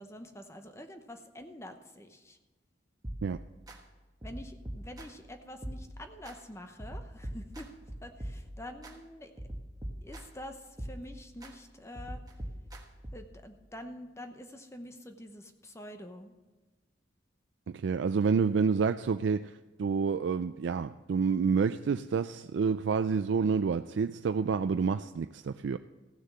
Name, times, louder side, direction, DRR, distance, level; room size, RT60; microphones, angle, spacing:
voice 1, 0.0-2.4 4.2-7.7 8.0-9.3 10.0-12.2 13.1-16.3, left 1 dB, 15° left, 6 dB, 0.8 m, -46 dB
sound 1, 3.0-3.8 4.2-5.3 5.6-6.4 6.8-8.9 9.4-10.4 10.8-11.5 12.0-13.4, equal, 20° right, 1.4 m, -43 dB
voice 2, 17.7-19.5 19.8-25.8, right 5 dB, 80° right, 10 dB, 0.4 m, -28 dB
15.0 x 6.5 x 7.4 m, 1.2 s
head